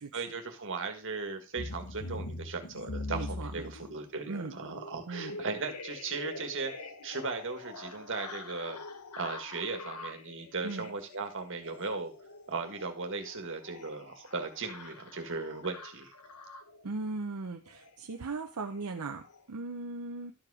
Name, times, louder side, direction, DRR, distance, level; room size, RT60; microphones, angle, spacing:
voice 1, 0.1-6.7 7.0-8.8 9.2-12.1 12.5-16.1, right 4 dB, 60° right, 5 dB, 1.7 m, -37 dB
sound 1, 1.6-16.9 17.7-17.9 18.2-18.4 18.7-18.9 19.2-19.4, left 2 dB, 85° left, 1.1 m, -44 dB
voice 2, 3.1-3.6 4.3-4.5 5.1-5.4 10.6-10.9 16.8-20.3, right 3 dB, 80° right, 4 dB, 0.7 m, -38 dB
12.0 x 4.9 x 4.8 m, 0.33 s
head